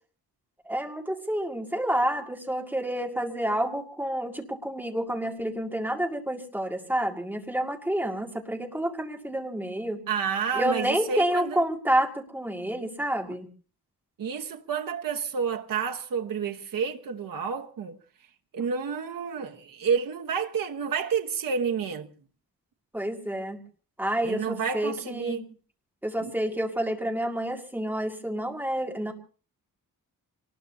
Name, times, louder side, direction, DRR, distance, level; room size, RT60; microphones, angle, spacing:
voice 1, 0.7-10.0 10.5-13.5 22.9-23.6 24.0-25.4 26.0-29.1, right 1 dB, 5° right, 2.1 m, -29 dB
voice 2, 10.1-11.6 14.2-18.0 18.5-22.1 24.2-25.4 26.2-26.3, right 6 dB, 60° right, 1.2 m, -30 dB
26.0 x 19.5 x 2.7 m
wide cardioid pair, 175°, 37 cm